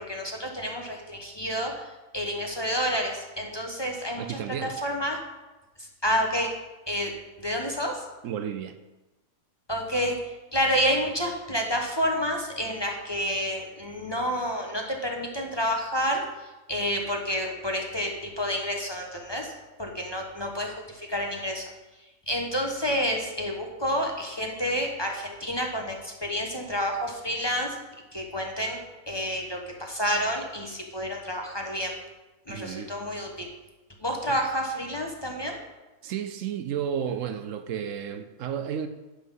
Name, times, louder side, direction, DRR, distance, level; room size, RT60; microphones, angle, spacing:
voice 1, 0.0-5.2 5.8-6.5 6.9-7.1 7.4-8.0 9.7-21.7 22.3-27.8 28.1-31.9 32.5-33.5 34.0-35.6, equal, 20° left, 1 dB, 1.1 m, -29 dB
voice 2, 4.2-4.8 8.2-8.8 32.5-33.0 34.3-34.4 36.0-38.9, right 8 dB, 70° right, 9 dB, 1.0 m, -32 dB
10.0 x 6.0 x 5.7 m, 1.1 s
omnidirectional pair, 1.4 m